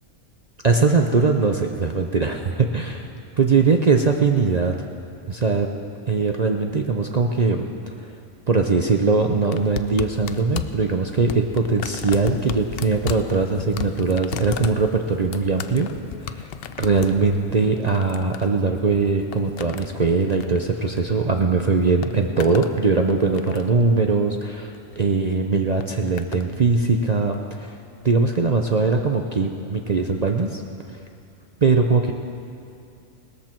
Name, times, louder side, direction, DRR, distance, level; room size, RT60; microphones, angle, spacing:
voice 1, 0.6-2.4 2.7-3.0 3.4-4.7 5.3-5.7 6.1-7.7 8.5-15.9 16.3-16.5 16.8-27.7 28.0-30.6 31.6-32.1, right 4 dB, 45° right, 3 dB, 0.5 m, -21 dB
sound 1, 9.5-21.4 21.7-22.7 23.1-23.8 24.7-25.0 25.8-26.5 27.3-27.4, left 9 dB, 60° left, 0.6 m, -35 dB
18.5 x 13.5 x 4.5 m, 2.6 s
omnidirectional pair, 1.4 m